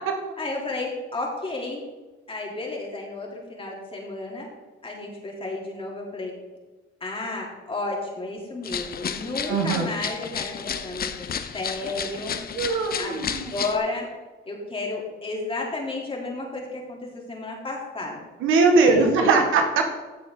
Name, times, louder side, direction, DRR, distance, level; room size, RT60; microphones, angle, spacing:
voice 1, 0.4-1.8 2.3-4.5 4.8-6.3 7.0-11.3 11.5-12.4 13.0-13.2 13.5-14.1 14.5-18.2 18.7-19.4, left 2 dB, 25° left, -2 dB, 3.4 m, -32 dB
sound 1, 8.6-13.8, left 7 dB, 50° left, 0.8 m, -32 dB
voice 2, 9.5-9.9 12.6-13.5 18.4-19.9, right 4 dB, 90° right, 3 dB, 1.8 m, -20 dB
15.0 x 6.6 x 3.9 m, 1.2 s
cardioid pair, 90°, 20 cm